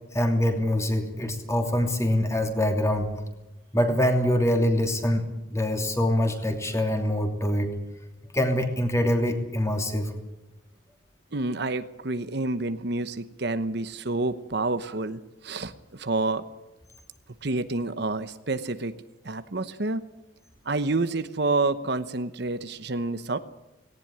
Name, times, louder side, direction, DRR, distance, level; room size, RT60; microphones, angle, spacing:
voice 1, 0.1-3.1 3.7-7.7 8.3-10.1, left 1 dB, 15° left, 5 dB, 2.9 m, -24 dB
voice 2, 11.3-16.4 17.4-18.9 19.2-20.1 20.6-23.4, right 2 dB, 55° right, 12 dB, 1.0 m, -28 dB
18.5 x 18.0 x 9.9 m, 1.0 s
head